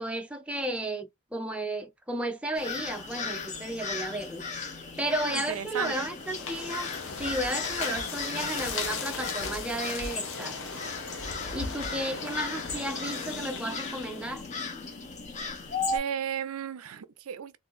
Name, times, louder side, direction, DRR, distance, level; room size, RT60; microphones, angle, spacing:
voice 1, 0.0-4.4 5.0-6.9 7.2-10.6 11.5-14.4, right 1 dB, 5° right, 0.5 m, -33 dB
sound 1, 2.5-16.0, left 4 dB, 35° left, 1.0 m, -36 dB
voice 2, 5.2-6.1 15.9-17.6, right 8 dB, 75° right, 0.5 m, -34 dB
sound 2, 6.1-14.5, left 4 dB, 60° left, 1.0 m, -37 dB
3.7 x 2.7 x 2.5 m
head